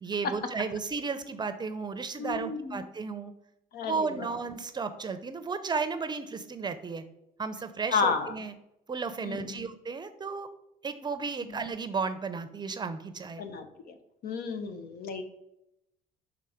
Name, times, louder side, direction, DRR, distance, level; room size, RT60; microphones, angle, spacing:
voice 1, 0.0-3.3 3.8-7.0 7.4-8.5 8.9-10.5 10.8-13.5, right 4 dB, 25° right, 10 dB, 0.6 m, -34 dB
voice 2, 2.2-2.8 3.7-4.3 7.9-8.3 9.2-9.6 11.4-11.6 13.4-14.0 14.2-15.2, left 5 dB, 65° left, 8 dB, 0.9 m, -32 dB
5.7 x 3.8 x 4.9 m, 0.83 s
cardioid pair, 110°, 17 cm